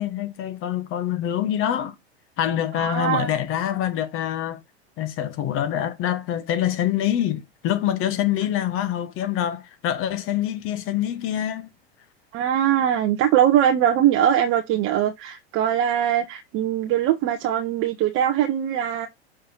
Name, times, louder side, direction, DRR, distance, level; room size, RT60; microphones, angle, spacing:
voice 1, 0.0-1.9 2.4-4.6 5.0-11.7, left 11 dB, 40° left, 1.4 m, -25 dB
voice 2, 2.7-3.3 12.3-19.1, right 10 dB, 40° right, 0.9 m, -21 dB
6.4 x 6.0 x 2.8 m
hypercardioid pair, 95°, 33 cm